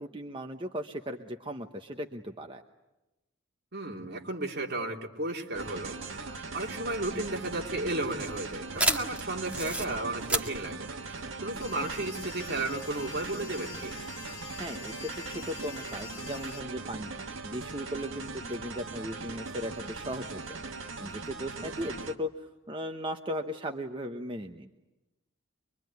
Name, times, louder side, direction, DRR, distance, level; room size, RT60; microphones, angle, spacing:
voice 1, 0.0-2.6 14.6-20.6 21.0-24.7, equal, 25° right, 4 dB, 1.0 m, -37 dB
voice 2, 3.7-13.9 21.6-21.9, right 2 dB, 55° right, 1 dB, 3.0 m, -34 dB
sound 1, 5.5-22.2, right 3 dB, 75° right, 1.6 m, -40 dB
sound 2, 7.0-12.0, right 1 dB, 5° right, 2.0 m, -33 dB
sound 3, 11.6-16.6, left 8 dB, 80° left, 1.0 m, -46 dB
25.0 x 23.5 x 9.4 m, 1.0 s
head